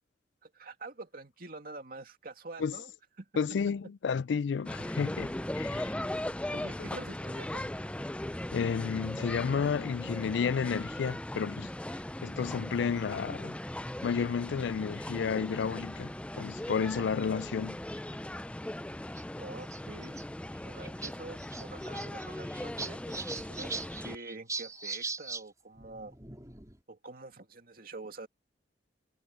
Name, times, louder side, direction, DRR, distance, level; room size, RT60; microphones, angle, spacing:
voice 1, 0.4-2.9 3.2-3.3 6.5-7.7 19.4-20.2 20.6-23.8 24.0-26.1 26.9-28.3, right 3 dB, 55° right, 2.6 m, -46 dB
voice 2, 3.4-5.9 8.5-11.7 12.2-13.6 14.0-17.8, left 6 dB, 90° left, 0.4 m, -31 dB
sound 1, 4.7-24.2, left 1 dB, 5° left, 0.4 m, -38 dB
sound 2, 16.4-16.7 17.6-17.7 18.0-18.1 19.2-19.3 19.6-20.2 20.6-20.7 20.8-21.1 21.4-25.4 25.8-26.8, right 4 dB, 20° right, 4.2 m, -40 dB
head